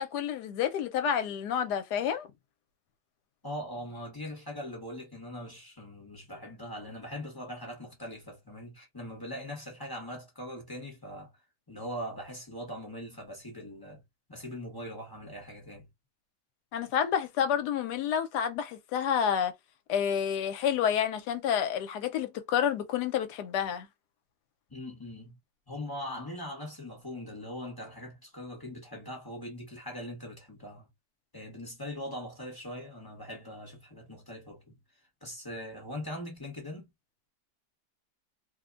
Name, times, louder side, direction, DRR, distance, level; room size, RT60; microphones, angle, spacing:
voice 1, 0.0-2.3 16.7-19.5 19.9-23.9, left 8 dB, 75° left, 1.1 m, -29 dB
voice 2, 3.4-11.3 11.7-14.0 14.3-15.9 24.7-25.4 25.7-30.9 31.3-34.8 35.2-36.9, left 1 dB, 20° left, 0.7 m, -41 dB
2.8 x 2.1 x 2.3 m
omnidirectional pair, 1.8 m